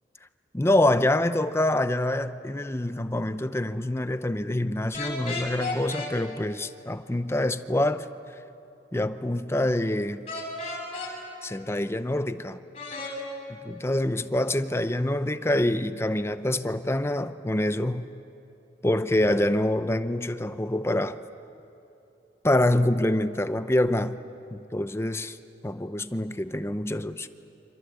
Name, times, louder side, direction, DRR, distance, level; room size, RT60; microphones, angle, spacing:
voice 1, 0.5-8.1 8.9-10.3 11.4-12.6 13.7-18.1 18.8-21.2 22.4-24.2 24.5-25.4 25.6-27.3, left 1 dB, 15° left, 0.6 m, -26 dB
sound 1, 4.9-6.1 10.3-11.1 12.7-13.1, left 2 dB, 35° left, 6.5 m, -33 dB
28.0 x 26.5 x 8.0 m
head